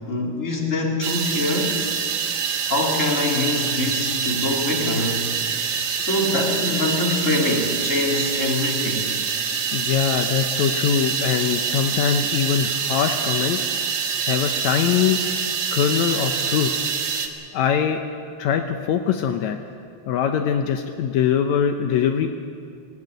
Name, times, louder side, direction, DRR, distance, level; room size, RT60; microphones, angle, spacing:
voice 1, 0.0-1.8 2.7-5.2 6.0-9.1, left 2 dB, 25° left, -1 dB, 3.3 m, -24 dB
sound 1, 1.0-17.3, right 6 dB, 90° right, 2.9 m, -25 dB
voice 2, 9.7-13.7 14.2-15.2 15.7-16.7 17.5-18.0 18.4-19.6 20.1-22.3, left 8 dB, 75° left, 5 dB, 2.1 m, -22 dB
18.5 x 17.5 x 9.3 m, 2.3 s
omnidirectional pair, 3.4 m